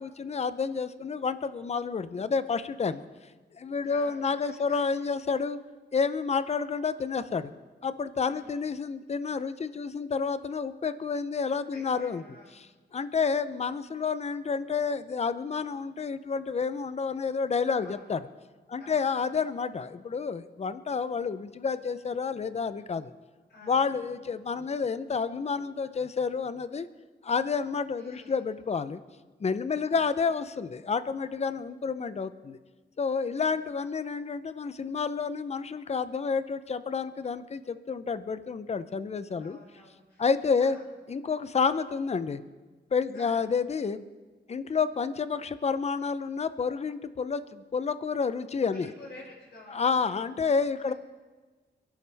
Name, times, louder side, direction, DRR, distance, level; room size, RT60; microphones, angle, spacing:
voice 1, 0.0-3.1 3.6-5.6 5.9-7.5 7.8-12.2 12.5-18.2 18.7-23.1 23.6-26.9 27.2-29.0 29.4-32.6 33.0-39.6 40.2-40.8 41.1-42.4 42.9-44.0 44.5-48.9 49.7-50.9, left 5 dB, 35° left, 13 dB, 0.6 m, -29 dB
voice 2, 3.8-4.8 8.2-8.6 11.7-12.6 17.8-18.1 18.8-19.3 23.5-24.2 28.0-28.4 29.9-30.1 33.3-33.6 39.4-40.3 40.6-40.8 43.1-43.4 48.7-50.2, left 1 dB, 75° left, -6 dB, 6.3 m, -51 dB
28.5 x 11.5 x 3.4 m, 1.3 s
wide cardioid pair, 150°, 18 cm